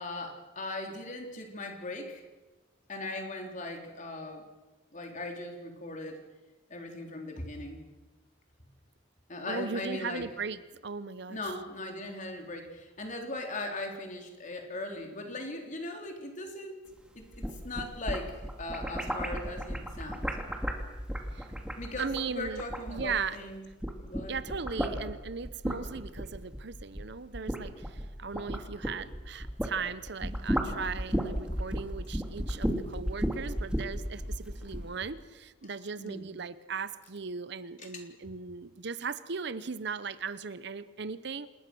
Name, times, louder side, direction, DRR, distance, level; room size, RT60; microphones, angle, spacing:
voice 1, 0.0-2.2 2.9-4.4 4.9-6.2 6.7-7.8 9.3-10.3 11.3-16.9 17.2-18.3 18.6-20.3 21.8-23.6 23.9-24.4 24.7-25.0 34.2-35.0 36.0-36.3 37.8-37.9, left 2 dB, 40° left, 3 dB, 3.7 m, -39 dB
voice 2, 9.5-11.5 21.3-21.5 22.0-23.4 24.3-41.5, right 5 dB, 65° right, 15 dB, 0.9 m, -38 dB
sound 1, 17.2-23.4 23.7-29.8 30.1-34.9, equal, 5° right, 2.4 m, -34 dB
27.5 x 20.5 x 6.3 m, 1.2 s
head